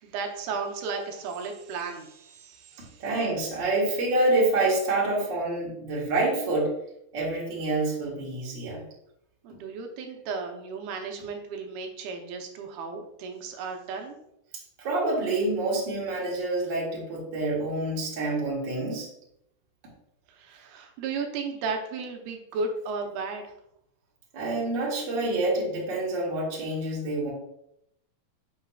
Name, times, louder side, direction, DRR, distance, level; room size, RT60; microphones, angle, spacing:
voice 1, 0.0-3.0 9.4-14.2 20.3-23.4, right 4 dB, 75° right, 3 dB, 2.6 m, -34 dB
voice 2, 3.0-6.7 7.1-8.8 14.8-19.1 24.3-27.3, right 2 dB, 45° right, -4 dB, 1.5 m, -27 dB
6.9 x 5.9 x 2.3 m, 0.78 s
omnidirectional pair, 4.6 m